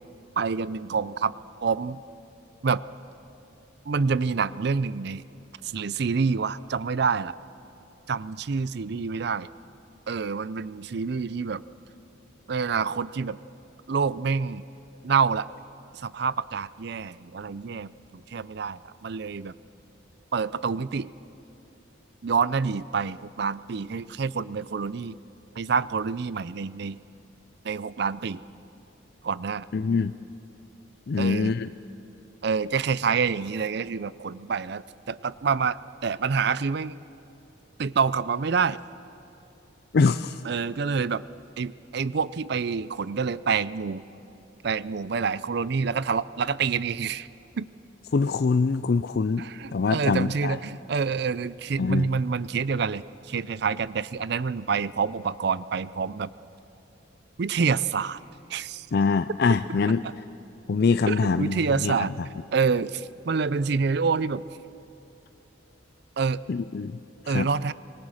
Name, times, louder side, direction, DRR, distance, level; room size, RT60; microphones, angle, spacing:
voice 1, 0.4-1.3 1.6-2.0 2.6-2.8 3.9-5.2 5.6-7.4 8.1-9.5 10.1-11.6 12.5-13.4 13.9-14.6 15.0-15.5 15.9-19.5 20.3-21.1 22.2-25.2 25.6-27.0 27.6-28.4 29.2-29.7 31.2-31.5 32.4-37.0 37.8-38.8 40.4-41.2 41.6-44.0 44.6-47.3 47.6-47.7 49.4-56.3 57.4-58.2 58.5-58.9 60.0-60.1 61.1-62.1 62.5-64.4 66.2-66.4 67.3-67.7, right 5 dB, 55° right, 18 dB, 0.5 m, -27 dB
voice 2, 29.7-30.1 31.1-31.7 39.9-40.4 48.1-49.5 49.7-50.6 51.8-52.1 58.9-60.0 60.7-61.9 66.5-67.0 67.3-67.5, left 4 dB, 55° left, 12 dB, 0.4 m, -24 dB
25.5 x 19.5 x 6.4 m, 3.0 s
head